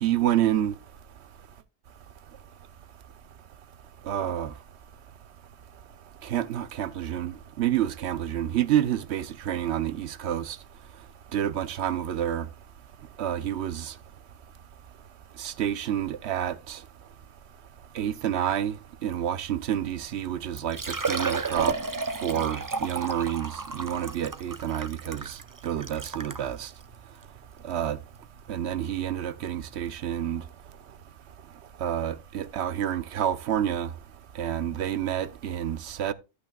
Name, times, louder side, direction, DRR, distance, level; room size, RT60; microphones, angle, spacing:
voice 1, 0.0-0.8 4.0-4.5 6.2-10.6 11.3-12.5 13.2-14.0 15.4-16.8 17.9-21.8 22.2-26.7 27.6-28.0 28.5-30.4 31.8-33.9 34.3-36.1, right 10 dB, 75° right, 1.0 m, -29 dB
Liquid, 20.1-20.2 20.6-26.5 27.2-27.3 27.7-27.8 29.4-29.5 29.7-29.8, right 4 dB, 25° right, 0.5 m, -32 dB
13.0 x 8.2 x 2.3 m
omnidirectional pair, 1.1 m